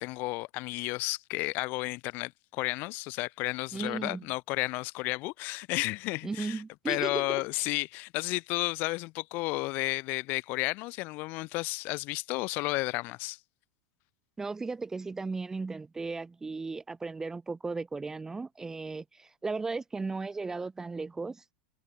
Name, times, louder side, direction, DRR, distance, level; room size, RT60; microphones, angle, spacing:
voice 1, 0.0-13.4, left 23 dB, 50° left, 1.3 m, -32 dB
voice 2, 3.7-4.3 6.2-7.4 14.4-21.4, right 4 dB, 15° right, 0.7 m, -36 dB
hypercardioid pair, 115°, 4 cm